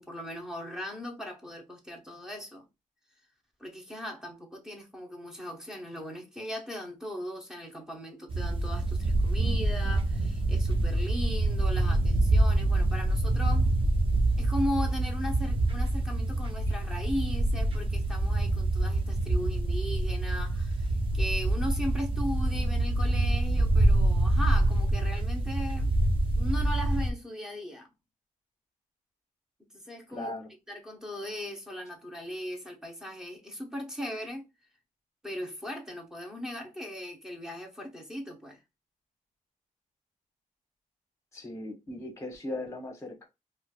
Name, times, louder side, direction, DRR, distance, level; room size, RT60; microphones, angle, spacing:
voice 1, 0.0-2.7 3.6-13.7 14.4-25.9 26.4-27.9 29.7-30.3 30.7-34.4 35.2-38.6, equal, 5° right, 0.7 m, -38 dB
sound 1, 8.3-27.1, right 2 dB, 40° right, 0.5 m, -26 dB
voice 2, 30.1-30.5 41.3-43.2, left 2 dB, 20° left, 1.0 m, -38 dB
4.3 x 2.1 x 2.3 m
wide cardioid pair, 165°, 14 cm